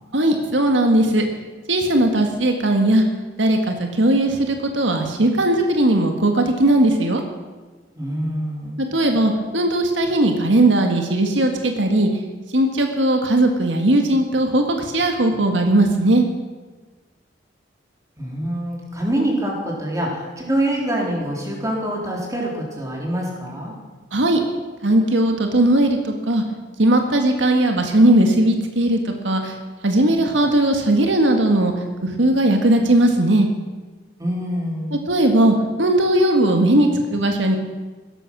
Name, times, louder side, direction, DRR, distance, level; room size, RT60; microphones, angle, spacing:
voice 1, 0.1-1.2 1.7-3.0 3.4-7.2 8.8-12.1 12.5-16.2 24.1-24.4 24.8-26.4 26.8-29.5 29.8-31.7 32.0-33.5 34.9-37.6, right 1 dB, 85° right, 4 dB, 1.8 m, -18 dB
voice 2, 7.9-8.8 18.2-23.7 34.2-34.9, right 1 dB, 15° right, -2 dB, 3.9 m, -25 dB
16.5 x 13.5 x 6.2 m, 1.3 s
head